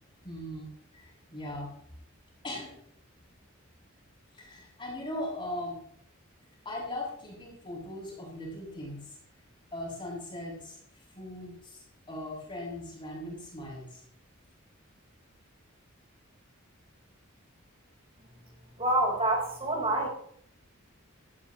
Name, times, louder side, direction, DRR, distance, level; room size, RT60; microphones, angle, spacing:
voice 1, 0.2-1.7 2.4-2.8 4.3-5.8 6.6-9.2 9.7-14.0, left 1 dB, 25° left, -4 dB, 7.5 m, -39 dB
voice 2, 18.8-20.1, right 1 dB, 30° right, 0 dB, 4.5 m, -27 dB
18.5 x 14.5 x 3.2 m, 0.65 s
head